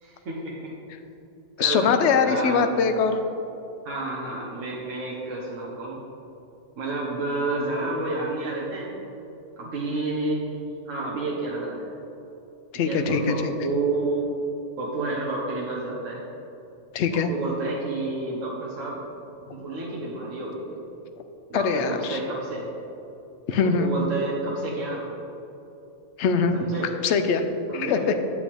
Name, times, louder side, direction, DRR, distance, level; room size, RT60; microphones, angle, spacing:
voice 1, 0.0-0.7 1.6-1.9 2.2-2.7 3.8-6.0 6.8-8.9 9.6-11.9 12.8-14.3 14.8-16.2 17.1-19.0 19.5-20.8 21.5-22.7 23.6-25.0 26.5-26.9 27.7-28.1, right 2 dB, 90° right, -3 dB, 1.3 m, -30 dB
voice 2, 1.6-3.2 12.7-13.3 16.9-17.3 21.5-22.2 23.5-23.9 26.2-26.6 27.0-27.4 27.7-28.2, left 5 dB, 70° left, 7 dB, 0.9 m, -22 dB
8.5 x 8.2 x 3.4 m, 3.0 s
omnidirectional pair, 1.3 m